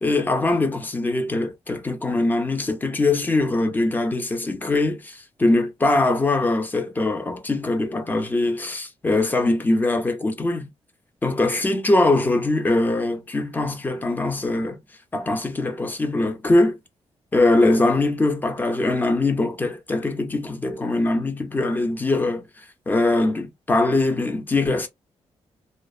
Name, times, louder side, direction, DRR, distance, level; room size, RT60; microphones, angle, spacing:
voice 1, 0.0-10.7 11.2-14.8 15.1-16.8 17.3-24.9, left 2 dB, 15° left, 0.4 m, -22 dB
2.7 x 2.1 x 2.3 m
wide cardioid pair, 165°, 11 cm